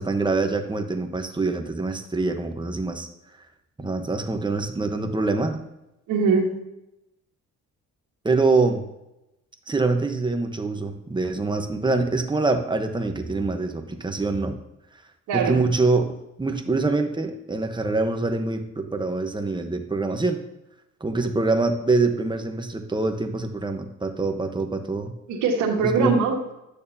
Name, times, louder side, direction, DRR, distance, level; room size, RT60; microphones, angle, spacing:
voice 1, 0.0-3.1 3.8-5.6 8.2-8.8 9.7-14.5 15.3-20.4 21.0-25.1 25.8-26.1, right 3 dB, 15° right, 5 dB, 1.0 m, -25 dB
voice 2, 6.1-6.5 15.3-15.6 25.3-26.5, right 4 dB, 85° right, 1 dB, 1.6 m, -22 dB
11.0 x 6.6 x 2.8 m, 0.91 s
cardioid pair, 90°, 30 cm